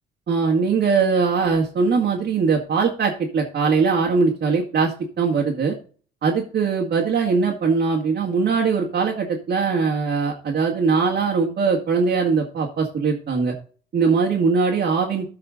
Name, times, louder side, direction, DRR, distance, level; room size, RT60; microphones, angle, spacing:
voice 1, 0.3-5.8 6.2-13.6 13.9-15.3, right 5 dB, 55° right, -1 dB, 2.1 m, -21 dB
13.5 x 4.8 x 3.9 m, 0.40 s
cardioid pair, 90°, 20 cm